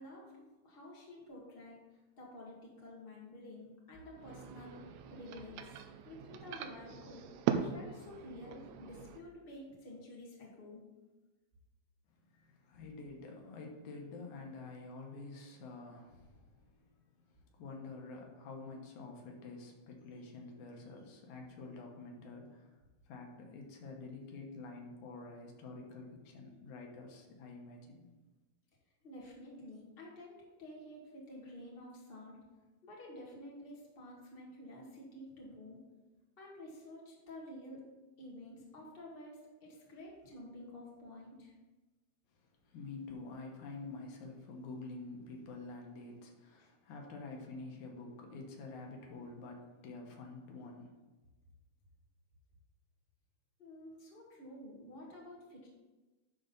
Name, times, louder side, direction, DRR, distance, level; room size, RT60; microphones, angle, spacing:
voice 1, 0.0-5.7 6.0-10.8 29.0-32.4 32.8-35.8 36.4-37.9 38.2-41.5 46.6-46.7 53.6-55.7, left 1 dB, 20° left, -4 dB, 1.8 m, -51 dB
sound 1, 4.1-9.2, right 8 dB, 80° right, 1.8 m, -40 dB
voice 2, 12.1-16.7 17.3-22.8 23.1-28.1 42.6-51.0, left 3 dB, 90° left, 1 dB, 2.7 m, -48 dB
11.0 x 3.9 x 5.5 m, 1.2 s
omnidirectional pair, 3.3 m